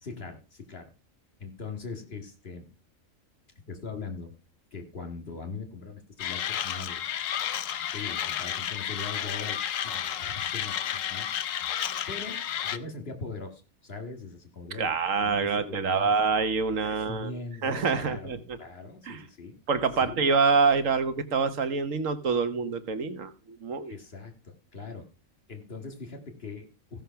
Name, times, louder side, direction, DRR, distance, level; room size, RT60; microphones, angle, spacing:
voice 1, 0.0-0.9 1.4-2.7 3.7-4.3 4.7-7.0 7.9-11.3 12.1-12.4 12.6-16.1 16.8-19.5 20.0-20.2 23.8-25.0 25.5-27.0, left 4 dB, 50° left, 2.1 m, -41 dB
Mechanisms, 6.2-12.8, left 10 dB, 75° left, 1.1 m, -32 dB
voice 2, 14.8-18.6 19.1-19.2 19.7-23.9, right 5 dB, 70° right, 1.4 m, -26 dB
15.5 x 5.7 x 5.7 m
omnidirectional pair, 1.4 m